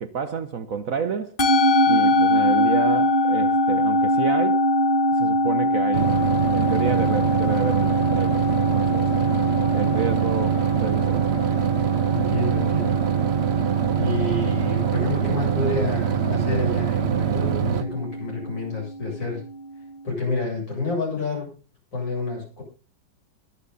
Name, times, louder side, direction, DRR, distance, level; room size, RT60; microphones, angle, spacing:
voice 1, 0.0-1.4 1.9-4.6 5.1-6.2 6.5-9.1 9.7-11.5, right 5 dB, 50° right, 1.2 m, -30 dB
Musical instrument, 1.4-19.9, left 1 dB, 30° left, 1.5 m, -23 dB
sound 1, 5.9-17.8, right 10 dB, 70° right, 0.6 m, -24 dB
voice 2, 12.1-13.0 14.0-19.4 20.0-21.5 21.9-22.6, left 3 dB, 70° left, 8.8 m, -29 dB
21.5 x 7.7 x 4.1 m
omnidirectional pair, 2.1 m